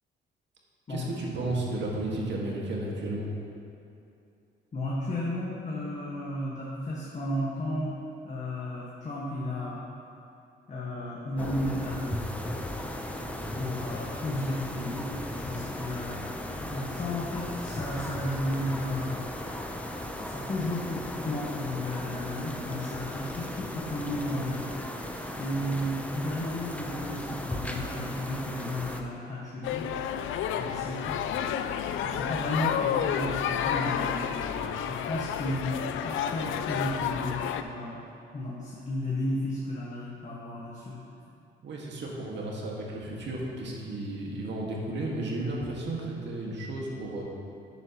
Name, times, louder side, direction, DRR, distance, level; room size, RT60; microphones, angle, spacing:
voice 1, 0.9-3.3 41.6-47.2, right 2 dB, 65° right, -3 dB, 2.0 m, -33 dB
voice 2, 4.7-7.9 8.2-9.8 10.7-12.1 13.6-16.2 16.6-19.2 20.3-24.6 25.4-29.9 30.6-31.2 32.0-35.8 36.0-38.0 38.3-41.0, left 1 dB, 35° left, -6 dB, 1.7 m, -33 dB
sound 1, 11.4-29.0, left 1 dB, 5° left, 0.8 m, -37 dB
sound 2, 29.6-37.6, left 8 dB, 80° left, 0.5 m, -30 dB
11.0 x 9.1 x 3.1 m, 2.6 s
cardioid pair, 90°, 20 cm